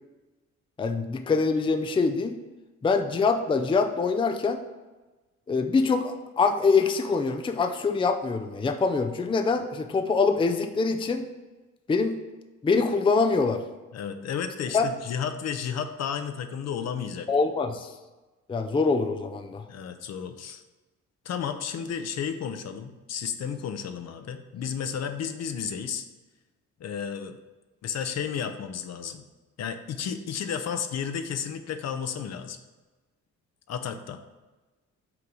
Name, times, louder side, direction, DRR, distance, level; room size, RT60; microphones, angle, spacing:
voice 1, 0.8-2.4 2.8-4.6 5.5-11.2 11.9-12.2 12.6-13.6 14.7-14.9 17.3-17.9 18.5-19.6, left 4 dB, 15° left, 6 dB, 0.5 m, -24 dB
voice 2, 13.9-17.3 19.7-20.6 21.2-26.0 26.8-27.4 27.8-29.2 29.6-32.6 33.7-34.2, left 7 dB, 60° left, 8 dB, 0.7 m, -32 dB
5.9 x 3.9 x 6.1 m, 1.2 s
cardioid pair, 90°, 30 cm